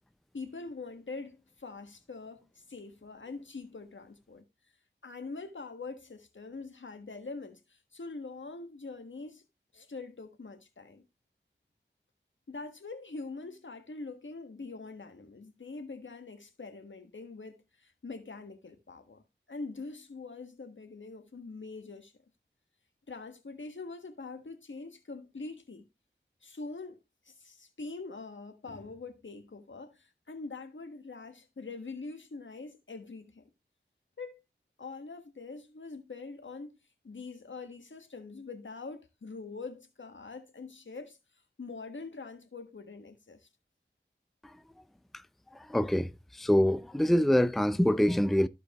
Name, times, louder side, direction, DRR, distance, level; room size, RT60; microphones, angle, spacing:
voice 1, 0.3-4.4 5.0-9.4 9.7-11.0 12.5-19.2 19.5-22.1 23.1-25.8 26.4-27.0 27.2-33.4 34.2-34.4 34.8-36.7 37.0-41.2 41.6-43.5, left 3 dB, 80° left, 1.5 m, -44 dB
voice 2, 45.5-48.5, equal, ahead, 0.5 m, -25 dB
14.5 x 4.9 x 3.0 m
wide cardioid pair, 40°, 19 cm